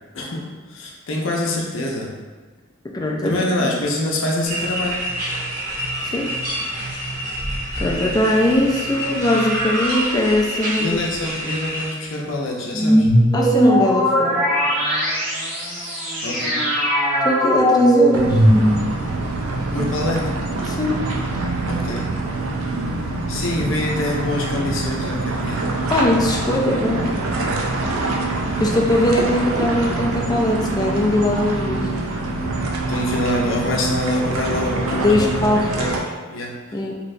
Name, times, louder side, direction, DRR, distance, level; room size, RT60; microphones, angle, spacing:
voice 1, 0.1-2.1 3.2-5.0 10.8-13.1 16.2-16.6 19.7-20.3 21.7-22.1 23.3-25.7 32.9-36.8, left 1 dB, 70° left, -2 dB, 0.6 m, -25 dB
voice 2, 2.8-3.3 3.6-3.7 6.0-6.3 7.8-11.0 13.3-14.4 17.2-18.4 20.7-20.9 25.9-27.0 28.6-31.9 34.9-35.6 36.7-36.9, left 1 dB, 20° left, 0 dB, 0.3 m, -20 dB
sound 1, 4.4-11.9, right 1 dB, 40° right, 0.8 m, -27 dB
sound 2, 12.7-19.0, equal, 5° right, 0.8 m, -18 dB
sound 3, 18.1-36.0, right 2 dB, 90° right, 0.4 m, -25 dB
3.2 x 2.8 x 2.6 m, 1.3 s
head